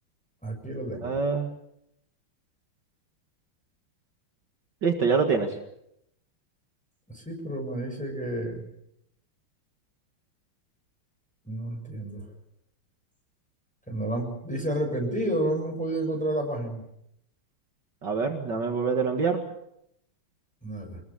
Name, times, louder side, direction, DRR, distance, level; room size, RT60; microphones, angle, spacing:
voice 1, 0.4-1.1 7.1-8.6 11.4-12.3 13.9-16.8 20.6-21.0, right 1 dB, 5° left, 1 dB, 7.1 m, -30 dB
voice 2, 1.0-1.5 4.8-5.6 18.0-19.4, right 5 dB, 55° right, 3 dB, 2.5 m, -25 dB
25.0 x 21.0 x 7.4 m, 0.78 s
omnidirectional pair, 2.3 m